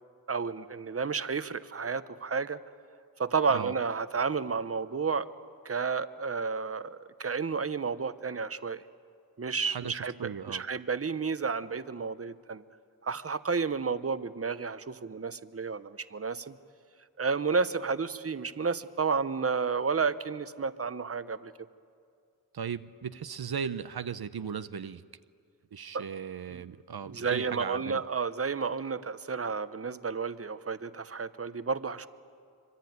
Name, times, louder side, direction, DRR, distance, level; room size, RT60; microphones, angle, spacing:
voice 1, 0.3-2.6 3.2-5.3 5.6-8.8 9.4-12.6 13.0-16.6 17.2-21.5 25.9-26.0 26.5-26.6 27.1-32.1, right 5 dB, 40° right, 14 dB, 0.9 m, -31 dB
voice 2, 9.7-10.6 22.5-25.0 25.7-28.0, right 7 dB, 75° right, 12 dB, 0.7 m, -37 dB
25.5 x 24.5 x 9.4 m, 2.4 s
wide cardioid pair, 75°, 38 cm